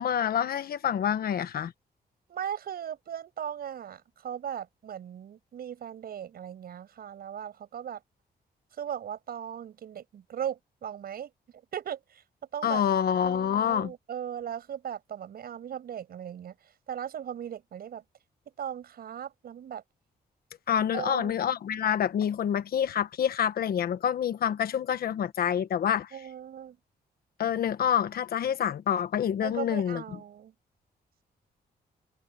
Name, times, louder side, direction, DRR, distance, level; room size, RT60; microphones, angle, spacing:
voice 1, 0.0-1.7 12.6-13.9 20.7-26.1 27.4-30.2, left 9 dB, 65° left, 1.3 m, -27 dB
voice 2, 2.3-8.0 8.8-11.3 11.7-12.2 12.5-12.8 13.2-16.5 16.9-18.0 18.6-19.8 20.9-21.4 26.1-26.8 29.4-30.5, right 9 dB, 65° right, 7.6 m, -38 dB
wide cardioid pair, 170°, 17 cm